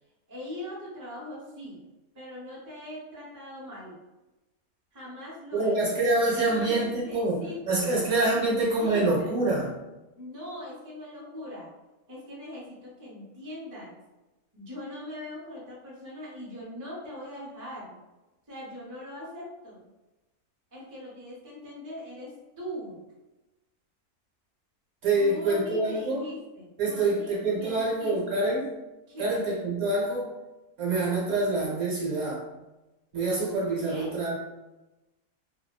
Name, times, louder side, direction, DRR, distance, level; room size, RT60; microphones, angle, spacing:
voice 1, 0.3-1.8 2.1-4.0 4.9-5.8 6.3-7.9 8.3-9.3 10.2-11.7 12.1-14.0 14.5-18.0 18.5-19.9 20.7-23.0 25.1-28.5 29.1-29.4 33.9-34.2, left 1 dB, 20° right, -6 dB, 0.5 m, -41 dB
voice 2, 5.5-9.7 25.0-26.2 26.8-28.7 29.2-30.3 30.8-32.4 33.1-34.3, right 2 dB, 60° right, -4 dB, 1.0 m, -26 dB
2.7 x 2.0 x 2.2 m, 1.0 s
omnidirectional pair, 1.5 m